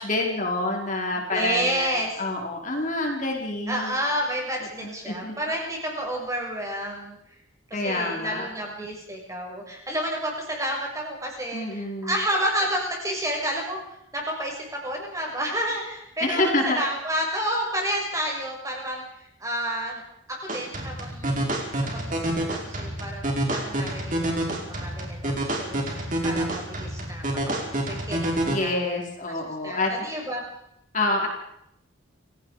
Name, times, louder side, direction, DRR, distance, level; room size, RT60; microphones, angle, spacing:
voice 1, 0.0-4.0 4.8-5.3 7.7-8.5 11.5-12.2 16.2-16.8 28.4-29.9 30.9-31.3, left 2 dB, 35° left, 0 dB, 4.8 m, -27 dB
voice 2, 1.3-2.2 3.7-7.2 7.7-20.0 20.3-21.5 21.8-25.3 25.6-28.3 28.6-29.0 29.6-30.4, equal, 15° right, 0 dB, 6.3 m, -30 dB
sound 1, 20.5-28.5, right 1 dB, 40° right, 5.1 m, -28 dB
30.0 x 17.5 x 5.1 m, 0.76 s
head